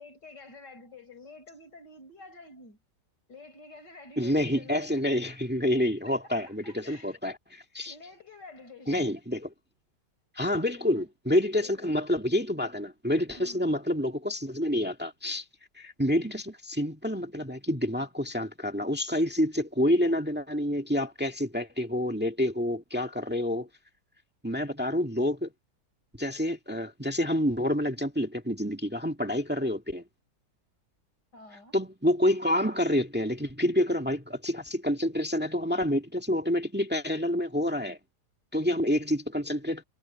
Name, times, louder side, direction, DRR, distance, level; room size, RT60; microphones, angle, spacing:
voice 1, 0.0-2.8 3.3-4.9 6.0-6.1 6.4-7.2 7.9-9.1 10.8-11.1 11.5-11.9 13.4-13.7 31.3-31.8, left 3 dB, 90° left, 5.9 m, -49 dB
voice 2, 4.2-7.9 8.9-9.5 10.4-15.4 15.8-23.7 24.4-25.5 26.2-30.0 31.7-38.0 38.5-39.8, left 1 dB, 5° right, 1.9 m, -28 dB
omnidirectional pair, 1.8 m